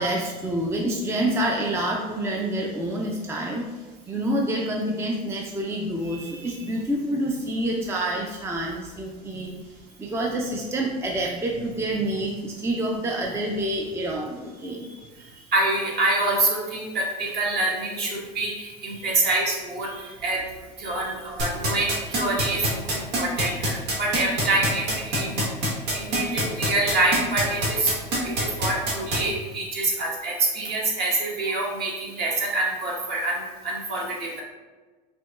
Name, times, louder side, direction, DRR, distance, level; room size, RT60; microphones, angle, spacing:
voice 1, 0.0-3.7 4.1-9.6 10.0-15.5 18.9-19.1 19.9-20.1 20.8-21.1 24.1-24.3 26.1-26.4, right 1 dB, 10° right, -1 dB, 0.5 m, -28 dB
voice 2, 15.5-19.9 20.2-20.4 20.8-25.4 25.9-27.9 28.2-34.4, right 2 dB, 50° right, -3 dB, 1.3 m, -26 dB
sound 1, 21.4-29.2, right 1 dB, 80° right, 1.2 m, -24 dB
5.1 x 2.9 x 2.4 m, 1.3 s
supercardioid pair, 100°, 21 cm